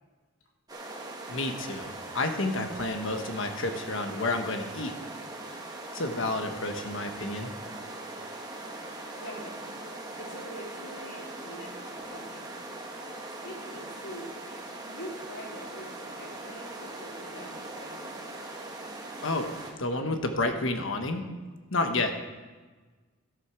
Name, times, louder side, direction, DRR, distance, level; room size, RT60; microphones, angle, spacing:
sound 1, 0.7-19.7, right 2 dB, 20° right, 1.4 m, -41 dB
voice 1, 1.3-5.0 5.9-7.5 19.2-19.5 19.8-21.2 21.7-22.1, left 2 dB, 65° left, 6 dB, 1.3 m, -30 dB
voice 2, 9.1-9.8 10.2-12.5 13.3-14.3 14.8-18.1, equal, 80° left, -2 dB, 3.4 m, -44 dB
13.5 x 8.0 x 6.0 m, 1.3 s
head